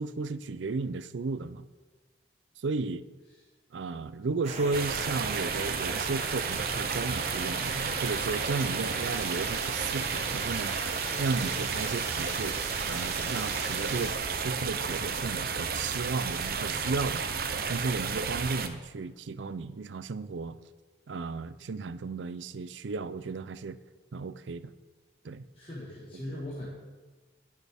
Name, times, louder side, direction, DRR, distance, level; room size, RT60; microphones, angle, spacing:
voice 1, 0.0-1.6 2.6-3.0 3.7-10.8 11.2-17.2 17.6-20.6 21.1-23.8 24.1-24.7 25.2-25.5 26.1-26.4, right 3 dB, 85° right, 14 dB, 0.5 m, -34 dB
sound 1, 4.4-14.1, right 3 dB, 35° right, 1.2 m, -38 dB
sound 2, 4.7-18.7, right 5 dB, 50° right, 0.7 m, -32 dB
voice 2, 25.5-26.7, left 1 dB, 30° left, -6 dB, 1.5 m, -39 dB
19.0 x 6.5 x 3.5 m, 1.3 s
head